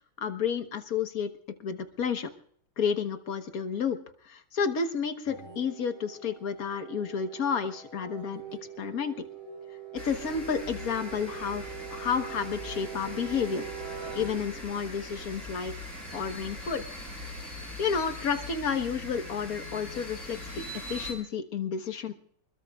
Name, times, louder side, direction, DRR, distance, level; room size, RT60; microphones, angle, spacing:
voice 1, 0.2-1.3 1.6-2.3 2.8-4.0 4.2-8.4 8.8-9.2 10.0-13.7 14.1-16.8 17.8-22.1, left 6 dB, 50° left, 7 dB, 1.4 m, -31 dB
sound 1, 5.3-15.2 17.4-20.1, right 8 dB, 15° right, 7.1 m, -44 dB
sound 2, 10.0-21.1, left 1 dB, 35° right, 8.3 m, -41 dB
29.0 x 21.0 x 2.4 m, 0.62 s
omnidirectional pair, 2.4 m